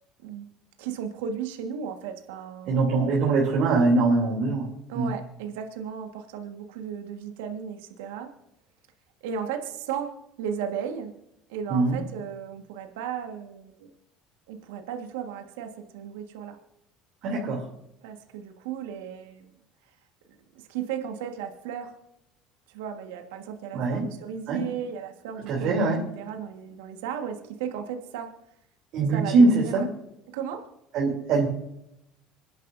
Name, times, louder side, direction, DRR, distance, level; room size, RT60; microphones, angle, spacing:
voice 1, 0.8-2.9 4.9-8.3 9.2-11.1 11.5-13.9 14.5-16.6 18.0-19.5 20.5-21.9 22.7-25.9 26.2-28.4 29.1-29.7 30.3-30.6, right 8 dB, 85° right, 5 dB, 1.6 m, -35 dB
voice 2, 2.7-4.7 4.9-5.1 11.7-12.0 17.2-17.7 23.7-24.1 24.5-24.6 25.5-26.0 28.9-29.9 30.9-31.5, right 3 dB, 65° right, -3 dB, 3.1 m, -22 dB
26.5 x 10.5 x 2.7 m, 0.81 s
supercardioid pair, 80°, 0 cm